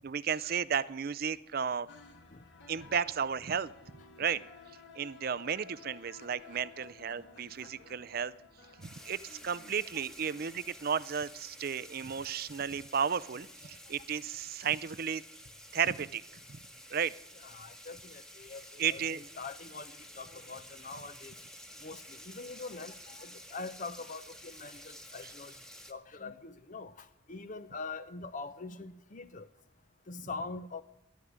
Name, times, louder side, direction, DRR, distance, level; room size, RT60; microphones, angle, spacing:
voice 1, 0.0-1.9 2.7-3.7 4.2-4.4 4.9-8.3 8.8-15.2 15.7-16.2 16.5-16.6 16.9-17.1 18.8-19.2, right 7 dB, 50° right, 18 dB, 0.5 m, -33 dB
sound 1, 1.9-10.9, left 5 dB, 65° left, 2.2 m, -55 dB
sound 2, 8.8-25.9, equal, 5° left, 1.2 m, -51 dB
voice 2, 9.3-10.0 17.4-19.0 19.4-21.3 21.8-25.5 25.9-29.5 30.1-30.8, left 3 dB, 40° left, 11 dB, 0.7 m, -44 dB
13.0 x 11.0 x 9.4 m, 0.86 s
head